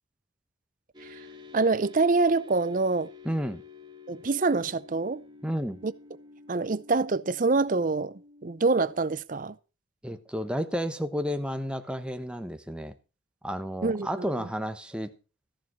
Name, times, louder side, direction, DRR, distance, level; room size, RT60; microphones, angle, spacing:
sound 1, 0.9-9.2, left 5 dB, 20° right, 2.4 m, -50 dB
voice 1, 1.5-3.1 4.1-5.2 5.8-5.9 6.5-9.6 13.8-14.5, right 3 dB, 40° right, 0.6 m, -26 dB
voice 2, 3.2-3.6 5.4-5.8 10.0-12.9 13.4-15.1, equal, 5° right, 1.0 m, -31 dB
14.0 x 7.0 x 6.2 m
head